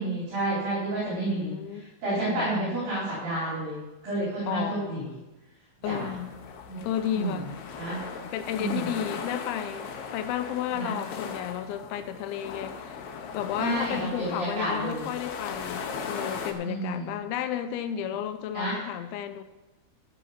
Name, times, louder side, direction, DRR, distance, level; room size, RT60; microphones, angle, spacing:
voice 1, 0.0-1.5 2.0-3.8 4.0-5.1 5.8-6.1 6.7-6.9 7.1-7.4 7.8-8.0 8.6-9.0 10.7-10.9 13.6-15.1 16.6-17.1 18.5-18.8, right 2 dB, 55° right, -8 dB, 5.7 m, -30 dB
voice 2, 1.1-2.9 4.5-5.1 5.8-6.3 6.8-7.5 8.3-13.0 13.3-19.4, left 10 dB, 90° left, 9 dB, 3.2 m, -33 dB
sound 1, 5.8-16.5, left 5 dB, 75° left, 2.9 m, -38 dB
14.0 x 7.0 x 5.8 m, 1.1 s
omnidirectional pair, 5.2 m